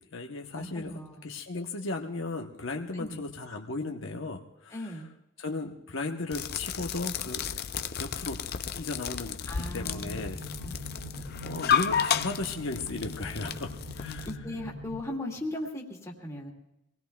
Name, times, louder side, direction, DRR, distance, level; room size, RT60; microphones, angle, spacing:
voice 1, 0.0-5.0 5.4-7.6 8.0-10.4 11.0-14.3, left 3 dB, 65° left, 2 dB, 0.9 m, -36 dB
voice 2, 0.5-1.3 2.9-3.2 4.7-5.1 9.5-10.2 10.6-10.8 14.3-16.5, left 1 dB, 15° left, -1 dB, 2.1 m, -38 dB
sound 1, 6.3-14.4, left 8 dB, 50° left, 0.6 m, -32 dB
sound 2, 9.6-15.0, left 1 dB, 85° right, 1.8 m, -43 dB
26.0 x 19.0 x 2.3 m, 0.90 s
head